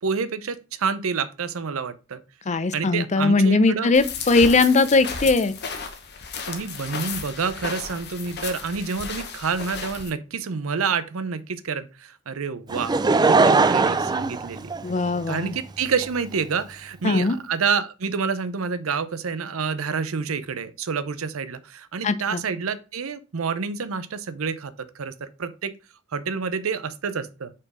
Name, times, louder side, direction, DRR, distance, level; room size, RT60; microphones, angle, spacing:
voice 1, 0.0-2.2 2.7-4.0 6.5-13.0 13.3-14.7 15.3-25.7 26.1-27.5, right 5 dB, 80° right, 0.6 m, -28 dB
voice 2, 2.5-5.6 14.8-15.5 17.0-17.4 22.0-22.4, left 3 dB, 35° left, 0.6 m, -20 dB
sound 1, 3.9-10.1, left 5 dB, 55° left, 1.0 m, -34 dB
Laughter / Crowd, 12.7-15.3 16.0-16.1, right 4 dB, 20° right, 0.4 m, -20 dB
5.3 x 4.4 x 4.8 m
head